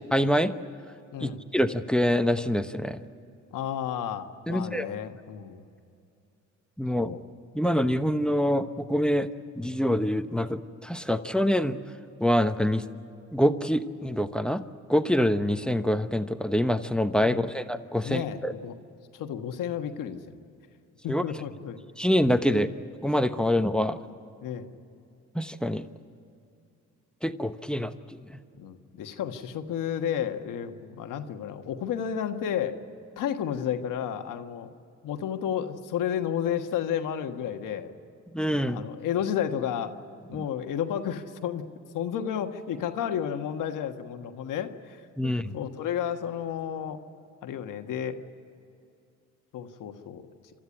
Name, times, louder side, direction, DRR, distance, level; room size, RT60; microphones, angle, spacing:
voice 1, 0.1-0.5 1.2-3.0 4.5-4.9 6.8-7.1 7.5-9.3 9.6-11.8 12.2-12.8 13.3-14.6 14.9-18.5 21.1-21.2 22.0-22.7 23.0-24.0 25.3-25.8 27.2-27.9 28.3-28.4 38.3-38.8 45.2-45.5, equal, 5° left, 10 dB, 1.0 m, -25 dB
voice 2, 3.5-5.6 7.0-7.2 17.2-17.5 18.0-18.7 19.1-20.4 21.0-21.8 22.4-22.7 24.4-24.7 28.6-32.8 33.2-34.7 35.0-37.9 38.7-40.0 40.3-41.6 41.9-47.0 47.4-48.2 49.5-50.3, left 9 dB, 85° left, 6 dB, 1.5 m, -32 dB
28.5 x 13.5 x 9.9 m, 2.6 s
cardioid pair, 75°, 31 cm